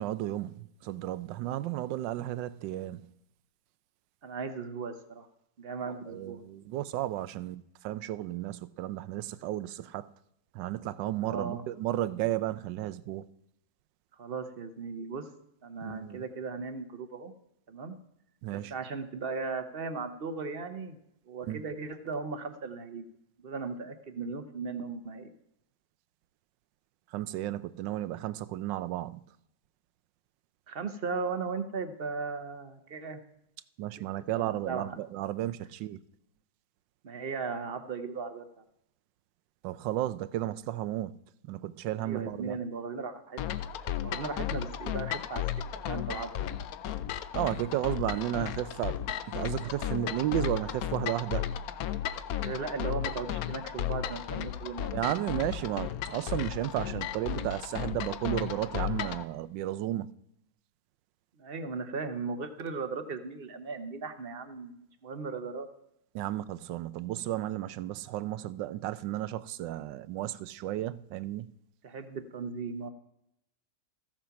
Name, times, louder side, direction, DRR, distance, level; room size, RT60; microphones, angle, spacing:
voice 1, 0.0-3.1 6.1-10.1 10.5-13.3 15.8-16.2 18.4-18.7 21.5-21.6 27.1-29.2 33.8-36.0 39.6-41.1 41.4-42.6 47.3-49.0 49.3-51.5 54.9-60.1 66.1-71.5, right 14 dB, 85° right, 1.3 m, -33 dB
voice 2, 4.2-5.3 5.6-6.4 11.2-11.6 14.2-15.3 15.6-17.3 17.7-17.9 18.5-21.0 21.3-23.0 23.4-25.3 30.7-33.2 34.3-35.0 37.0-38.4 42.0-43.6 44.0-45.4 45.9-46.6 52.4-54.9 61.4-65.7 71.8-72.9, right 4 dB, 50° right, 0.7 m, -37 dB
sound 1, 43.4-59.2, left 10 dB, 70° left, 0.9 m, -34 dB
14.0 x 7.4 x 5.7 m
omnidirectional pair, 1.9 m